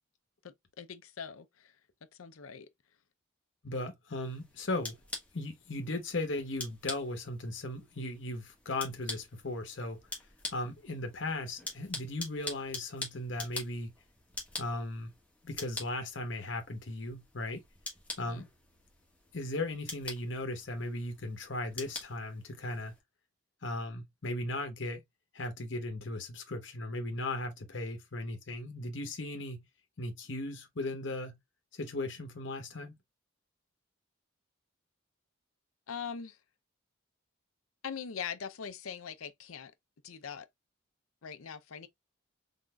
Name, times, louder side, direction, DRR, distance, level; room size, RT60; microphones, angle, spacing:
voice 1, 0.4-1.8 2.1-2.7 18.2-18.5 35.9-36.4 37.8-39.7 40.0-40.5 41.2-41.9, left 7 dB, 85° left, 0.6 m, -42 dB
voice 2, 3.6-5.0 5.3-10.0 10.5-13.9 14.6-15.1 15.4-17.6 18.2-18.5 19.3-22.9 23.6-25.0 25.3-29.6 30.0-31.4 31.7-32.9, left 2 dB, 60° left, 1.0 m, -37 dB
sound 1, 4.2-23.0, left 2 dB, 5° left, 1.2 m, -46 dB
3.8 x 3.6 x 2.3 m
head